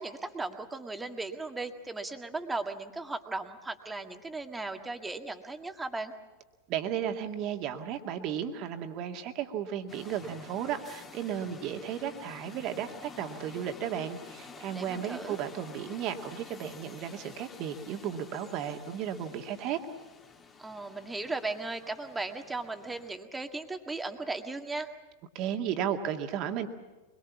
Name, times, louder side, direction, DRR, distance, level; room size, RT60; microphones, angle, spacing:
voice 1, 0.0-6.1 14.7-15.4 20.6-24.9, right 3 dB, 10° right, 6 dB, 1.9 m, -37 dB
voice 2, 6.7-19.8 25.3-26.7, right 9 dB, 40° right, 5 dB, 2.1 m, -34 dB
sound 1, 9.9-23.2, left 5 dB, 20° left, 2.3 m, -50 dB
24.0 x 22.5 x 7.2 m, 1.2 s
figure-of-eight pair, 90°, 0 cm